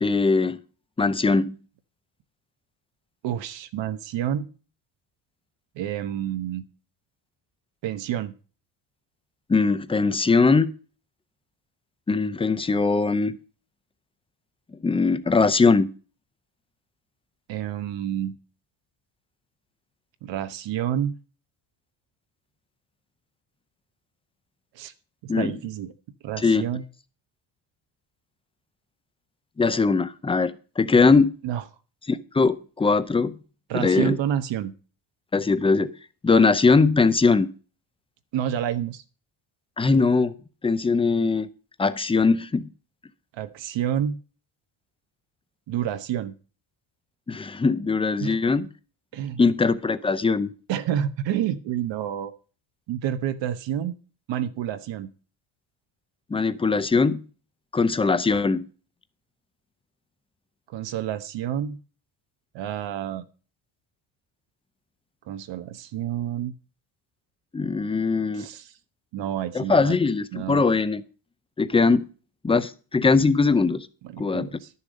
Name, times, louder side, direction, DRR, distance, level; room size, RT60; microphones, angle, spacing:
voice 1, 0.0-0.6 1.0-1.5 9.5-10.7 12.1-13.4 14.8-15.9 25.3-25.5 26.4-26.7 29.6-31.3 32.1-33.4 33.7-34.2 35.3-35.9 36.2-37.5 39.8-40.3 40.6-41.5 41.8-42.7 47.3-48.7 49.4-50.5 56.3-57.2 57.7-58.7 67.5-68.5 69.5-71.0 71.6-72.1 72.4-73.9 74.2-74.5, left 4 dB, 10° left, 13 dB, 0.5 m, -21 dB
voice 2, 3.2-4.5 5.8-6.7 7.8-8.3 17.5-18.4 20.2-21.1 24.7-24.9 25.2-25.9 26.2-26.8 31.4-31.6 33.7-34.7 38.3-39.0 43.3-44.2 45.7-46.3 48.2-48.4 49.1-49.4 50.7-52.3 52.9-53.9 54.3-55.1 60.7-61.8 62.5-63.2 65.3-66.5 68.3-68.7 69.1-70.0 70.3-70.6 74.0-74.7, right 10 dB, 70° right, 10 dB, 1.1 m, -29 dB
11.5 x 7.1 x 5.2 m, 0.37 s
cardioid pair, 145°, 46 cm